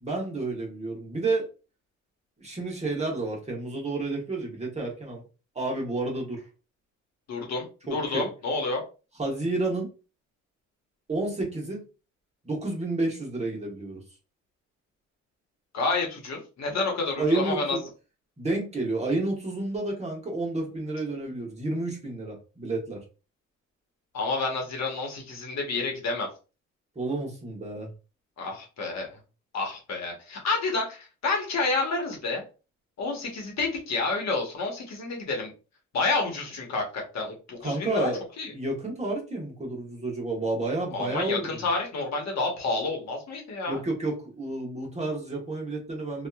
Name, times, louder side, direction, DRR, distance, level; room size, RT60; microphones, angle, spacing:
voice 1, 0.0-1.4 2.4-5.2 5.5-6.4 7.9-8.2 9.2-9.9 11.1-11.8 12.4-14.0 17.2-17.8 18.4-23.0 26.9-27.9 37.6-38.2 38.5-41.7 43.7-46.3, right 2 dB, 20° right, -1 dB, 1.1 m, -30 dB
voice 2, 7.3-7.6 7.9-8.8 15.7-17.8 24.1-26.3 28.4-29.1 29.5-32.4 33.0-35.5 35.9-38.1 38.4-38.5 40.9-43.8, left 3 dB, 60° left, 1 dB, 1.1 m, -29 dB
2.7 x 2.4 x 2.3 m, 0.32 s
cardioid pair, 90°, 30 cm